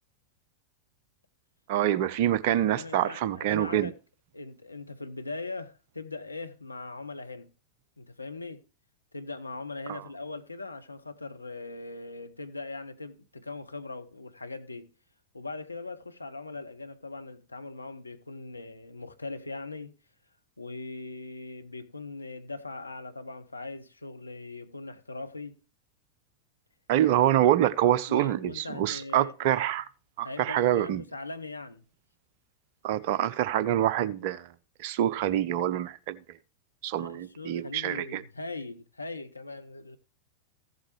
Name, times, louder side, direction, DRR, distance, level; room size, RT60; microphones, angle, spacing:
voice 1, 1.7-3.9 9.9-10.0 26.9-29.9 30.2-31.0 32.8-34.5 34.8-36.2 36.8-38.2, right 12 dB, 50° right, 0.7 m, -26 dB
voice 2, 2.7-3.9 4.3-7.5 8.0-8.6 9.1-14.9 15.3-20.0 20.6-25.6 28.1-29.6 30.2-31.8 37.0-40.0, left 3 dB, 80° left, 0.8 m, -40 dB
15.0 x 7.6 x 3.1 m
figure-of-eight pair, 90°, 0 cm